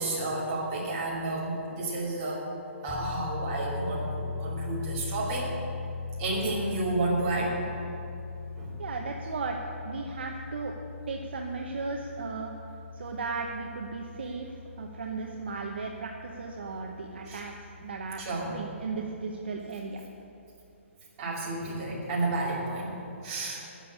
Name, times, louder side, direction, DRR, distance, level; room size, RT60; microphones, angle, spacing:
voice 1, 0.0-2.4 2.8-5.5 6.2-7.6 8.6-8.7 17.3-17.4 18.2-18.5 21.2-23.6, right 2 dB, 20° right, -6 dB, 2.8 m, -31 dB
sound 1, 2.9-19.2, left 4 dB, 5° left, 0.5 m, -40 dB
voice 2, 8.8-9.6 9.8-10.7 11.1-12.5 12.9-20.0, right 4 dB, 50° right, 1 dB, 0.9 m, -36 dB
11.0 x 7.2 x 9.7 m, 2.7 s
hypercardioid pair, 180°, 7 cm